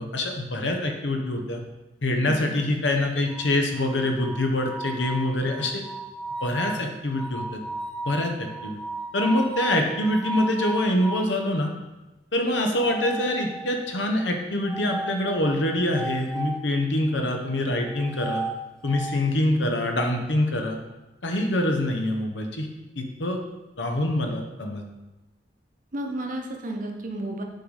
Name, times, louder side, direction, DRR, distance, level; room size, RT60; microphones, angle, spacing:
voice 1, 0.0-1.6 2.0-5.8 6.4-7.6 8.1-8.8 9.1-11.7 12.3-18.4 18.8-20.8 21.2-22.7 23.0-23.4 23.8-24.8, left 1 dB, 75° left, 3 dB, 0.9 m, -25 dB
voice 2, 2.2-2.7 25.9-27.4, right 1 dB, 50° right, 3 dB, 0.9 m, -32 dB
sound 1, 3.3-11.4 12.6-13.9 14.7-16.6 17.8-19.2, right 2 dB, 5° left, 0.4 m, -35 dB
6.5 x 4.0 x 4.8 m, 1.1 s
head